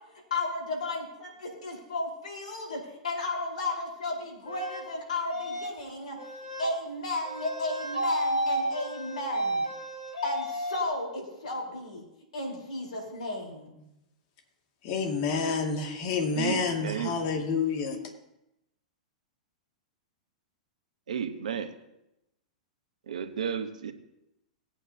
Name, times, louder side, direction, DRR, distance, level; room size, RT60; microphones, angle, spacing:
voice 1, 0.3-6.2 6.6-9.7 10.2-12.0 12.3-13.8, left 2 dB, 75° left, 0 dB, 4.6 m, -34 dB
sound 1, 4.4-4.9 5.3-5.8 6.2-6.7 7.2-10.9, right 1 dB, 90° left, 4.6 m, -32 dB
voice 2, 14.8-18.0, left 5 dB, 50° left, 2 dB, 2.4 m, -28 dB
voice 3, 16.4-17.1 21.1-21.7 23.1-23.9, right 7 dB, 75° right, 8 dB, 1.1 m, -32 dB
20.0 x 8.9 x 2.9 m, 0.88 s
hypercardioid pair, 105°, 4 cm